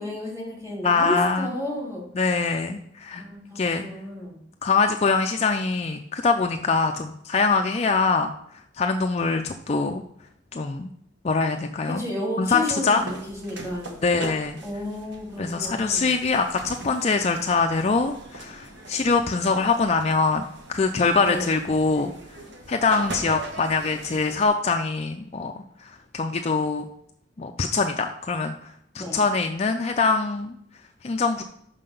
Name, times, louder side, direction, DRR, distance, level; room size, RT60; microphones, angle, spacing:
voice 1, 0.0-2.0 3.2-4.4 11.9-13.9 14.6-16.1 21.2-21.6 28.9-29.2, left 1 dB, 15° right, -4 dB, 2.6 m, -32 dB
voice 2, 0.8-1.5 2.2-3.2 3.6-3.9 4.6-8.3 8.8-10.0 10.5-10.9 11.2-12.0 12.4-13.0 14.0-14.6 15.4-20.4 20.7-22.1 22.7-26.9 27.4-30.6 31.0-31.4, left 4 dB, 35° left, 5 dB, 0.4 m, -23 dB
sound 1, 12.9-24.5, right 2 dB, 60° right, 1.1 m, -41 dB
5.7 x 5.7 x 5.3 m, 0.68 s
head